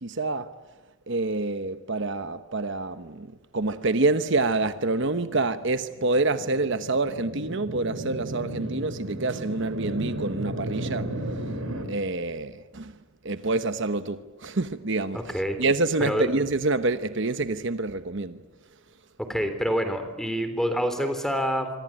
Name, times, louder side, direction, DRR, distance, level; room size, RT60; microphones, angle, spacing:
voice 1, 0.0-0.5 1.1-11.4 11.9-13.0 13.2-15.2 15.6-18.4, right 3 dB, 55° right, 1.0 m, -27 dB
sound 1, 4.3-11.8, right 1 dB, 75° right, 5.0 m, -35 dB
voice 2, 15.1-15.6 16.0-16.3 19.3-21.7, equal, ahead, 3.5 m, -27 dB
26.0 x 24.5 x 9.1 m
head